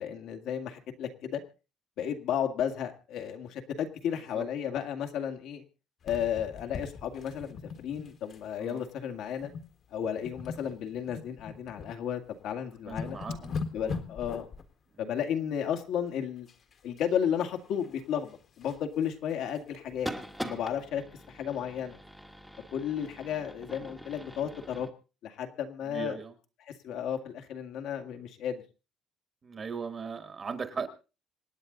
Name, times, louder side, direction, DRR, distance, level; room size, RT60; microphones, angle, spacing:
voice 1, 0.0-1.4 2.0-5.6 6.0-9.5 9.9-13.2 13.7-14.5 15.0-16.5 16.8-20.1 20.4-22.0 22.7-24.9 25.2-26.2 26.7-28.6, left 8 dB, 65° left, 5 dB, 2.1 m, -33 dB
sound 1, 6.0-8.4 8.7-8.9 9.4-9.7 10.0-11.9 12.4-12.5 12.8-14.7 16.5-17.0 17.4-18.8 19.3-19.4 19.7-19.8 20.2-20.3, left 5 dB, 40° left, 1.7 m, -40 dB
voice 2, 12.8-13.5 13.8-14.0 25.9-26.3 29.4-30.9, right 5 dB, 25° right, 9 dB, 1.5 m, -38 dB
sound 2, 19.9-24.9, equal, ahead, 1.3 m, -43 dB
26.5 x 9.4 x 3.9 m, 0.34 s
cardioid pair, 170°, 0 cm